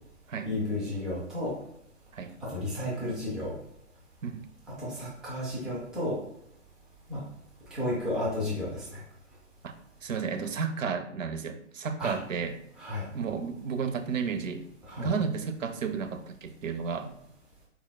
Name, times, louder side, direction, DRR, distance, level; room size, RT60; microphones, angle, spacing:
voice 1, 0.4-1.5 2.4-3.5 4.8-6.2 7.1-7.2 7.7-9.0 12.0-12.2 12.8-13.0 14.9-15.1, left 1 dB, ahead, -6 dB, 0.4 m, -32 dB
voice 2, 10.0-12.6 13.1-14.6 15.0-17.1, right 6 dB, 85° right, 8 dB, 0.7 m, -32 dB
5.5 x 4.2 x 2.2 m, 0.77 s
hypercardioid pair, 125°, 38 cm